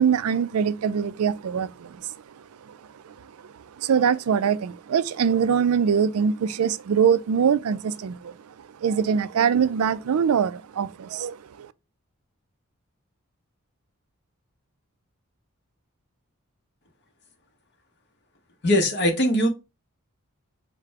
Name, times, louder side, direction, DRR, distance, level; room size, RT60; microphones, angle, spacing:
voice 1, 0.0-2.1 2.7-2.8 3.0-3.1 3.8-8.3 8.8-11.7, right 7 dB, 80° right, 0.4 m, -23 dB
voice 2, 18.6-19.5, equal, 50° left, 1.0 m, -20 dB
5.0 x 2.2 x 4.6 m
head